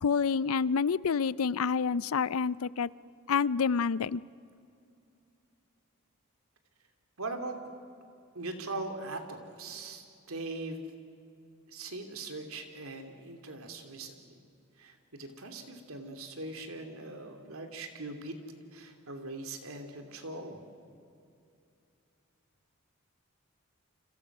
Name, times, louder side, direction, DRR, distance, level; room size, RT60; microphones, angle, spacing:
voice 1, 0.0-2.9 3.3-4.2, left 5 dB, 80° left, 20 dB, 0.5 m, -28 dB
voice 2, 7.2-7.5 8.3-10.8 11.7-14.4 14.8-18.4 18.7-20.6, right 2 dB, 80° right, 5 dB, 3.0 m, -41 dB
29.5 x 26.5 x 6.2 m, 2.6 s
head